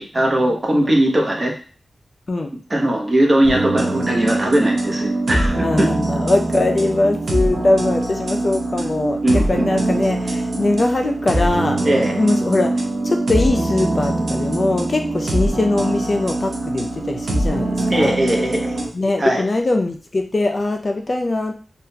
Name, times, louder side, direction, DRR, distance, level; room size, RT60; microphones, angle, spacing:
voice 1, 0.0-1.5 2.7-5.9 9.2-9.7 11.8-12.1 17.9-18.8 19.2-19.4, right 1 dB, 35° right, 0 dB, 0.8 m, -19 dB
sound 1, 3.4-18.9, right 2 dB, 75° right, 0.7 m, -23 dB
voice 2, 5.6-11.8 12.2-18.2 18.9-21.5, left 2 dB, 40° left, 4 dB, 0.3 m, -21 dB
3.5 x 2.3 x 2.7 m, 0.40 s
wide cardioid pair, 105°, 0 cm